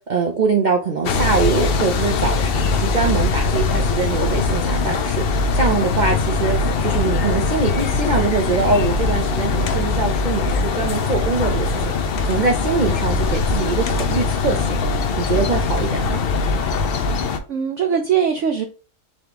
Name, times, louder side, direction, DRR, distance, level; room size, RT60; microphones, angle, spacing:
voice 1, 0.1-5.2 5.5-11.9 12.2-14.8 15.2-16.1, right 4 dB, 90° right, 2 dB, 0.4 m, -23 dB
sound 1, 1.0-17.4, left 4 dB, 75° left, 0.5 m, -21 dB
voice 2, 16.9-18.6, right 7 dB, 65° right, 3 dB, 0.8 m, -22 dB
4.2 x 3.5 x 2.9 m, 0.35 s
omnidirectional pair, 1.7 m